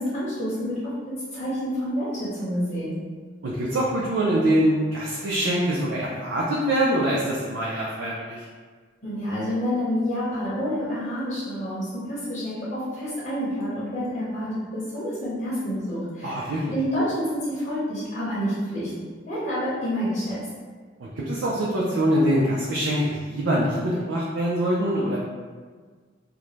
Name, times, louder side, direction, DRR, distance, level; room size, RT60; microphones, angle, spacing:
voice 1, 0.0-2.9 9.0-18.9 19.3-20.4, equal, 40° left, -11 dB, 0.8 m, -28 dB
voice 2, 3.4-8.5 16.2-16.7 21.0-25.2, right 1 dB, 75° right, -5 dB, 0.4 m, -24 dB
2.5 x 2.1 x 3.1 m, 1.6 s
head